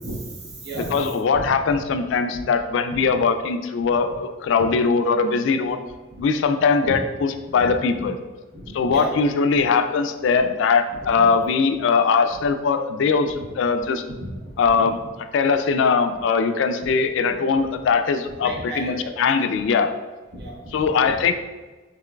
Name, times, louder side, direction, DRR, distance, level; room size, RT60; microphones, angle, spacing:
voice 1, 0.0-1.4 1.9-2.0 2.3-2.4 3.9-4.0 4.6-4.7 6.8-7.0 7.5-7.7 8.0-8.1 8.6-9.2 10.9-11.3 13.2-13.5 14.2-14.4 14.8-15.1 15.6-15.7 17.3-17.6 18.4-19.1 20.3-21.2, right 1 dB, 55° right, -2 dB, 0.9 m, -35 dB
voice 2, 0.8-5.8 6.2-8.1 8.7-14.0 14.6-15.0 15.3-19.9 20.7-21.3, left 5 dB, 65° left, 9 dB, 0.3 m, -21 dB
5.9 x 3.0 x 2.2 m, 1.2 s
head